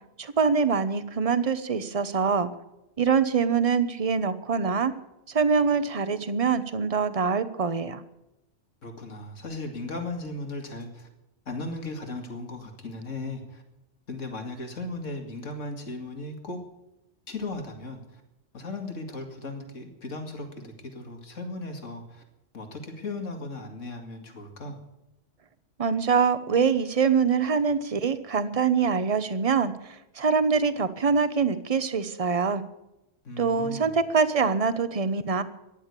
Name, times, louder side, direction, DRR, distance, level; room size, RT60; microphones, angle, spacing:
voice 1, 0.2-2.5 3.0-4.9 5.3-8.0 25.8-32.6 33.4-35.4, right 5 dB, 30° right, 12 dB, 0.9 m, -24 dB
voice 2, 8.8-11.1 11.5-13.6 14.1-16.6 17.3-18.2 18.5-22.2 22.5-24.8 33.2-34.0, left 2 dB, 85° left, 4 dB, 2.6 m, -37 dB
15.0 x 10.5 x 8.3 m, 0.94 s
omnidirectional pair, 1.3 m